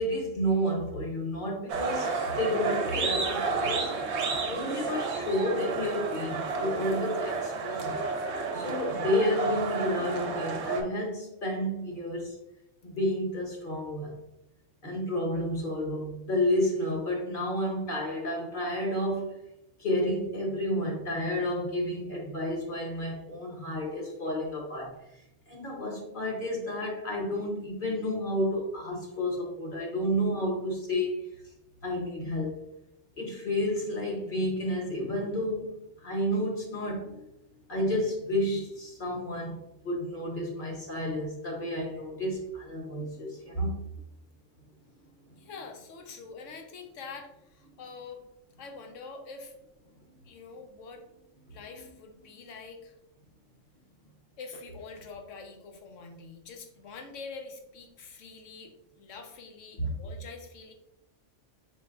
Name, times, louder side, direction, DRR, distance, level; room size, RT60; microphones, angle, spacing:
voice 1, 0.0-4.2 4.4-8.0 8.5-12.4 12.8-14.2 14.8-19.4 19.8-25.0 25.5-31.3 31.8-32.6 33.2-37.3 37.7-44.0 50.1-50.2 59.8-59.9, left 1 dB, 45° left, -1 dB, 1.1 m, -31 dB
sound 1, 1.7-10.8, right 4 dB, 65° right, 0.9 m, -31 dB
voice 2, 45.4-48.2 48.6-49.5 50.2-51.0 51.5-52.9 54.4-60.7, left 4 dB, 75° left, 4 dB, 1.1 m, -45 dB
4.5 x 4.2 x 2.4 m, 0.85 s
omnidirectional pair, 1.3 m